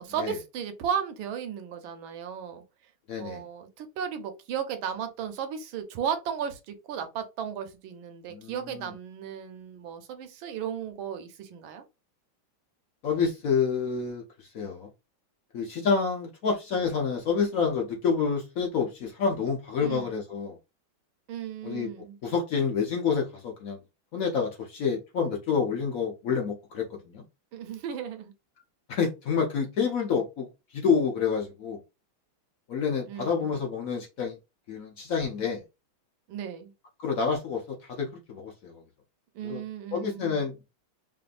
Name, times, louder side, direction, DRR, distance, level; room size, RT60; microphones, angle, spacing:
voice 1, 0.0-2.6 3.2-11.8 19.8-20.1 21.3-22.2 27.5-28.3 33.1-33.6 36.3-36.7 39.3-40.5, right 8 dB, 75° right, 1.5 m, -35 dB
voice 2, 3.1-3.4 8.3-8.5 13.0-14.2 14.5-14.9 15.5-20.6 21.6-21.9 22.2-23.8 24.1-27.2 28.9-30.5 30.7-31.8 32.7-34.4 34.7-35.6 37.0-38.8 39.4-39.6 39.9-40.5, left 6 dB, 70° left, 0.8 m, -28 dB
5.0 x 2.6 x 2.4 m
omnidirectional pair, 2.3 m